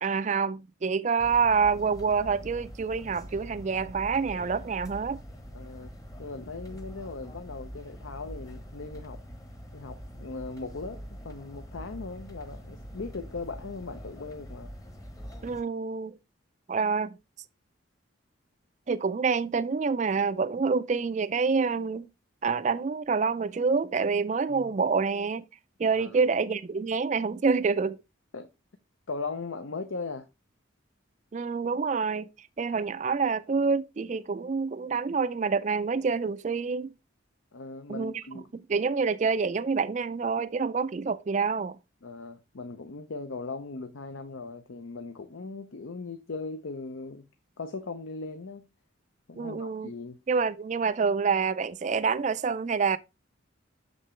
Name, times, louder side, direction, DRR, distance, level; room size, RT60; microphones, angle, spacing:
voice 1, 0.0-5.2 15.4-16.2 16.7-17.2 18.9-22.1 22.4-25.4 25.8-28.0 31.3-32.3 32.6-36.9 37.9-38.2 38.5-41.8 49.4-49.9 50.3-53.0, right 5 dB, 35° right, 0.3 m, -27 dB
sound 1, 1.2-15.6, equal, 15° left, 0.9 m, -44 dB
voice 2, 5.5-5.9 6.2-9.2 9.7-11.0 11.2-14.7 24.5-24.8 25.9-26.3 28.3-28.5 29.1-30.3 37.5-38.5 42.0-47.3 47.6-48.7 49.3-50.2, left 3 dB, 75° left, 0.7 m, -39 dB
6.8 x 6.4 x 3.2 m
head